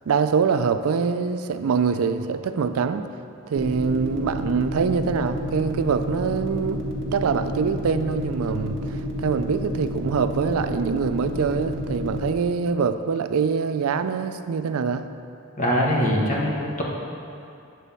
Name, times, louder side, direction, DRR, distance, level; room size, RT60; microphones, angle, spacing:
voice 1, 0.1-3.1 3.5-6.8 7.1-15.0, right 5 dB, 85° right, 10 dB, 0.4 m, -24 dB
sound 1, 3.6-12.3, equal, 55° right, 1.1 m, -29 dB
voice 2, 15.6-16.8, equal, 35° left, -3 dB, 1.3 m, -22 dB
9.1 x 4.1 x 6.8 m, 2.6 s
head